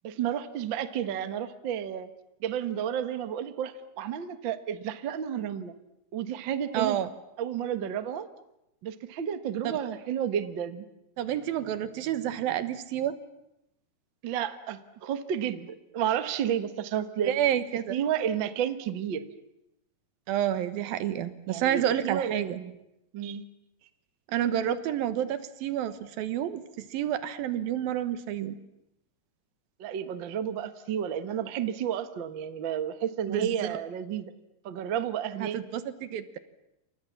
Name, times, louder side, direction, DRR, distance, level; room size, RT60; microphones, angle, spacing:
voice 1, 0.0-2.1 2.4-5.7 6.1-7.0 7.4-8.3 8.8-10.8 14.2-17.4 17.9-19.3 21.5-22.8 23.1-23.4 29.8-34.3 34.6-35.6, right 9 dB, 50° right, 10 dB, 1.4 m, -31 dB
voice 2, 6.7-7.1 11.2-13.2 17.3-18.0 20.3-22.6 24.3-28.6 33.3-33.8 35.4-36.4, right 11 dB, 85° right, 12 dB, 3.1 m, -29 dB
29.0 x 26.5 x 7.3 m, 0.85 s
omnidirectional pair, 4.1 m